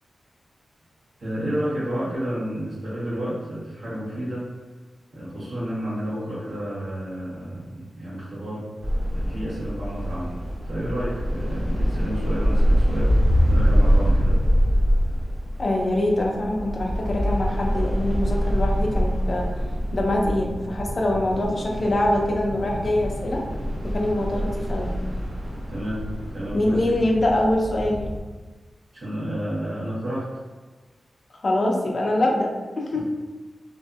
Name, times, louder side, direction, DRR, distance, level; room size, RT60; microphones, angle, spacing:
voice 1, 1.2-4.5 5.1-8.6 9.1-13.1 13.5-14.4 25.7-27.0 28.9-30.3 32.9-33.0, right 1 dB, 65° right, -9 dB, 1.1 m, -31 dB
sound 1, 8.8-28.2, equal, 85° right, 0.8 m, -24 dB
voice 2, 15.6-19.5 19.9-23.4 23.8-24.9 26.5-28.0 31.4-32.5 32.8-33.0, left 1 dB, 40° left, -1 dB, 0.4 m, -24 dB
2.6 x 2.5 x 2.3 m, 1.3 s
wide cardioid pair, 135°, 0 cm